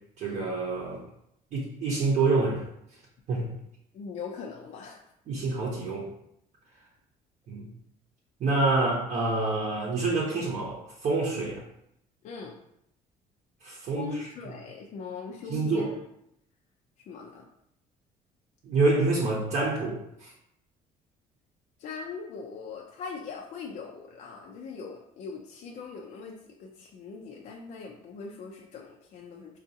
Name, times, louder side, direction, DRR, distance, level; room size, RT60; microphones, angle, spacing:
voice 1, 0.2-1.0 1.5-2.6 3.3-3.5 5.3-6.1 7.5-7.7 8.4-11.6 13.6-14.1 15.5-15.9 18.6-20.3, right 3 dB, 50° right, -5 dB, 0.8 m, -27 dB
voice 2, 3.9-5.0 12.2-12.6 13.9-15.9 17.1-17.5 21.8-29.6, left 5 dB, 50° left, 0 dB, 0.5 m, -41 dB
4.8 x 2.4 x 2.7 m, 0.77 s
cardioid pair, 145°, 15 cm